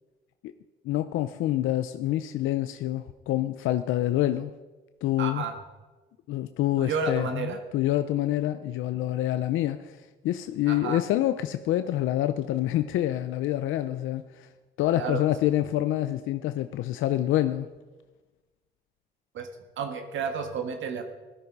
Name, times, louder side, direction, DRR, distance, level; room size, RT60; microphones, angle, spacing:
voice 1, 0.8-4.5 5.0-5.5 6.3-14.5 14.8-17.7, left 13 dB, 85° left, 10 dB, 0.6 m, -27 dB
voice 2, 5.2-5.5 6.8-7.6 10.7-11.0 14.9-15.2 19.3-19.5 19.8-21.0, right 5 dB, 75° right, 6 dB, 1.6 m, -31 dB
15.0 x 13.0 x 5.4 m, 1.2 s
cardioid pair, 90°, 20 cm